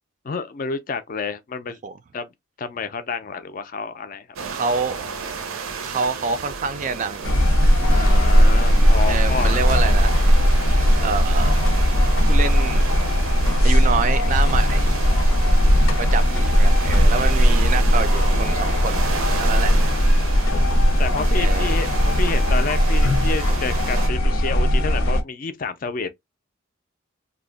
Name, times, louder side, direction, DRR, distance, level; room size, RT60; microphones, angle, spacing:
voice 1, 0.2-1.8 2.1-2.3 2.6-4.3 7.9-9.6 15.6-16.5 19.5-20.2 21.0-21.9 22.2-26.1, left 4 dB, 40° left, 0.4 m, -30 dB
sound 1, 4.4-24.1, right 5 dB, 85° right, 0.6 m, -32 dB
voice 2, 4.5-5.0 5.8-7.4 9.0-10.2 11.0-11.5 12.2-12.9 13.6-14.9 16.0-19.1 19.4-19.7 21.3-21.7, right 5 dB, 35° right, 0.3 m, -27 dB
sound 2, 7.2-25.2, equal, 90° left, 0.7 m, -18 dB
2.7 x 2.1 x 3.8 m
head